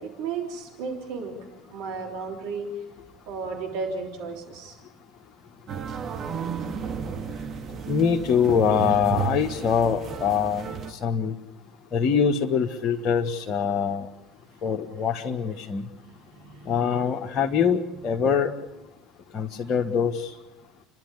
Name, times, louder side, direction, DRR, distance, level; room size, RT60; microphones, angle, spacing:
voice 1, 0.0-1.4 1.7-2.8 3.3-4.8 16.1-16.8, right 4 dB, 65° right, 0 dB, 3.6 m, -34 dB
sound 1, 5.7-10.9, right 6 dB, 45° right, 2.1 m, -33 dB
voice 2, 7.9-11.4 11.9-14.1 14.6-15.8 16.6-18.5 19.3-20.3, left 7 dB, 45° left, 2 dB, 1.4 m, -24 dB
29.5 x 12.0 x 9.8 m, 1.0 s
figure-of-eight pair, 65°, 0 cm